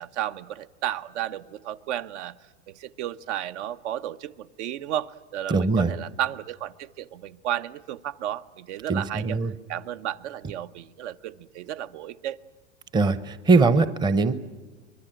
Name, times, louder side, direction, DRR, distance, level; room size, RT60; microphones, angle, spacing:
voice 1, 0.0-2.4 2.7-12.4, right 11 dB, 65° right, 12 dB, 0.9 m, -33 dB
voice 2, 5.5-5.9 8.9-9.5 12.9-14.3, right 3 dB, 10° right, 14 dB, 0.7 m, -21 dB
24.0 x 22.0 x 8.9 m, 1.3 s
supercardioid pair, 135°, 39 cm